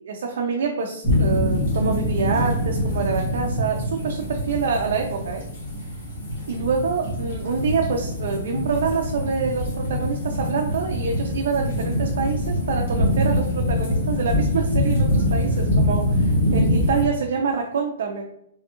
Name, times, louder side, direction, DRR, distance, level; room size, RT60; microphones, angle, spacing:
voice 1, 0.0-5.4 6.5-18.3, right 5 dB, 55° right, 1 dB, 0.4 m, -26 dB
sound 1, 1.0-17.1, left 1 dB, 45° left, 1.0 m, -24 dB
3.3 x 2.3 x 2.8 m, 0.78 s
hypercardioid pair, 180°, 0 cm